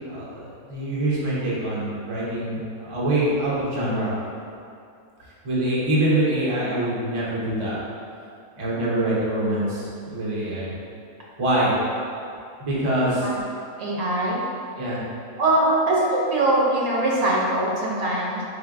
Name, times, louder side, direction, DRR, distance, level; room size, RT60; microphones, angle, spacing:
voice 1, 0.1-4.1 5.4-7.8 8.6-10.7 11.4-11.7 12.6-13.3 14.8-15.0, right 1 dB, 30° right, -7 dB, 0.6 m, -24 dB
voice 2, 13.8-14.4 15.4-18.4, right 1 dB, 75° right, -4 dB, 1.1 m, -22 dB
4.4 x 3.3 x 2.4 m, 2.5 s
omnidirectional pair, 1.6 m